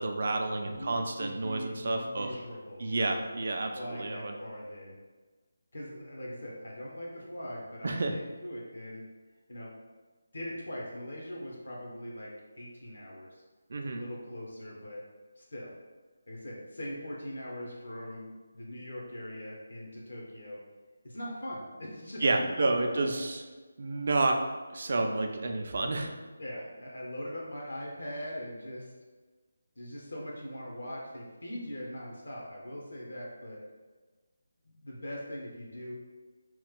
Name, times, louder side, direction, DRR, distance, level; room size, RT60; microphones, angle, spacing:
voice 1, 0.0-2.3 2.8-4.3 7.8-8.1 13.7-14.0 22.2-23.4 23.8-24.4 24.7-26.1, right 2 dB, 50° right, 4 dB, 0.4 m, -30 dB
voice 2, 0.6-2.9 3.7-5.0 5.7-9.1 9.5-9.7 10.3-13.4 13.8-15.0 15.4-15.7 16.3-20.6 21.0-23.0 26.4-28.9 29.8-33.6 34.6-35.9, equal, 70° left, -3 dB, 0.8 m, -41 dB
3.0 x 2.4 x 3.5 m, 1.3 s
figure-of-eight pair, 155°, 0 cm